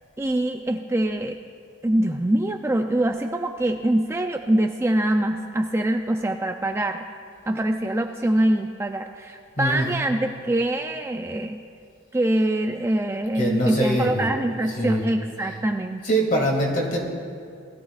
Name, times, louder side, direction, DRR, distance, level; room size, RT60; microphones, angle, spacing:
voice 1, 0.2-1.4 1.8-7.0 7.5-11.6 12.1-16.0, right 1 dB, 15° right, 4 dB, 0.3 m, -24 dB
voice 2, 9.6-9.9 13.3-14.3 14.8-15.0 16.0-17.0, right 1 dB, 40° left, -1 dB, 2.2 m, -23 dB
20.0 x 13.5 x 2.4 m, 2.3 s
head